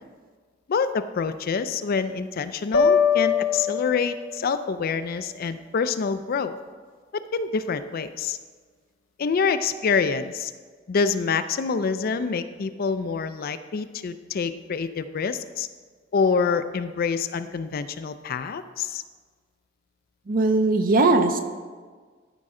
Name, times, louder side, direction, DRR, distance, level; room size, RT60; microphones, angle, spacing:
voice 1, 0.7-6.5 7.1-8.4 9.2-10.5 10.9-15.7 16.1-19.0, left 5 dB, 50° left, 11 dB, 0.4 m, -26 dB
sound 1, 2.7-4.6, left 6 dB, 80° left, 0.8 m, -22 dB
voice 2, 20.3-21.4, right 3 dB, 45° right, 7 dB, 0.6 m, -19 dB
13.0 x 5.2 x 3.7 m, 1.5 s
head